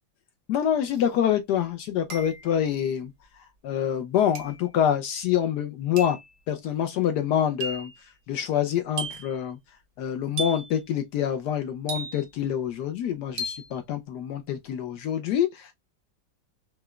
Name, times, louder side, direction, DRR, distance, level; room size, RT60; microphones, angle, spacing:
voice 1, 0.5-3.1 3.6-6.2 6.5-7.9 8.3-9.6 10.0-15.7, left 9 dB, 75° left, 1.1 m, -26 dB
sound 1, 0.9-1.0 2.1-2.6 4.3-4.7 6.0-6.3 7.6-7.9 9.0-9.4 10.4-10.8 11.9-12.4 13.4-13.7, right 2 dB, 55° right, 0.9 m, -35 dB
4.8 x 2.1 x 2.2 m
omnidirectional pair, 2.0 m